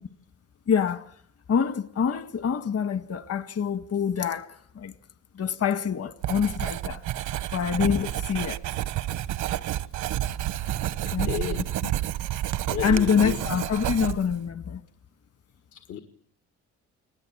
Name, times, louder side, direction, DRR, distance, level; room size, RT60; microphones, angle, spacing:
voice 1, 0.7-1.0 1.5-4.5 4.8-4.9 5.4-7.0 7.5-8.6 11.1-11.3 11.8-11.9 12.8-14.8, left 7 dB, 55° left, 1.8 m, -26 dB
Writing, 6.2-14.4, right 13 dB, 85° right, 1.0 m, -30 dB
voice 2, 9.4-9.8 11.0-11.7 12.7-13.4 15.7-16.0, left 10 dB, 75° left, 2.0 m, -34 dB
30.0 x 20.0 x 8.9 m
cardioid pair, 90°, 30 cm